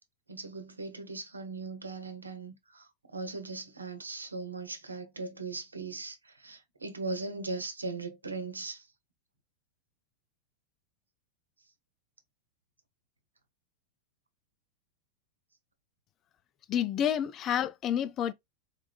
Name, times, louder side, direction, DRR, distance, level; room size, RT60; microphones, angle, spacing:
voice 1, 0.3-2.9 3.1-6.2 6.4-8.8, right 3 dB, 80° right, 0.9 m, -38 dB
voice 2, 16.7-18.3, left 9 dB, 30° left, 0.4 m, -29 dB
4.1 x 3.5 x 2.3 m
figure-of-eight pair, 90°, 0 cm